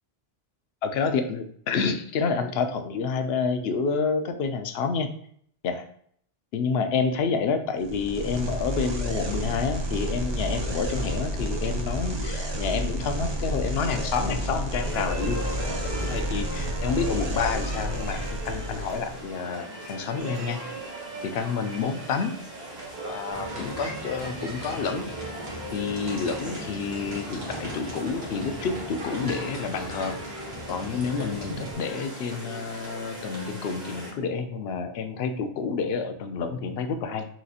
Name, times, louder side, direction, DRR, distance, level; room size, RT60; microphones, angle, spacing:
voice 1, 0.8-5.1 5.6-5.9 6.5-15.5 16.0-20.6 21.2-22.4 23.1-25.1 25.7-30.2 30.7-37.3, left 5 dB, 75° left, 8 dB, 0.8 m, -29 dB
sound 1, 7.8-19.2, equal, 30° right, 0.6 m, -30 dB
sound 2, 14.8-34.1, right 1 dB, 50° right, 1.4 m, -38 dB
sound 3, 23.3-31.7, equal, 75° right, 1.5 m, -38 dB
5.9 x 2.8 x 2.4 m, 0.63 s
omnidirectional pair, 1.1 m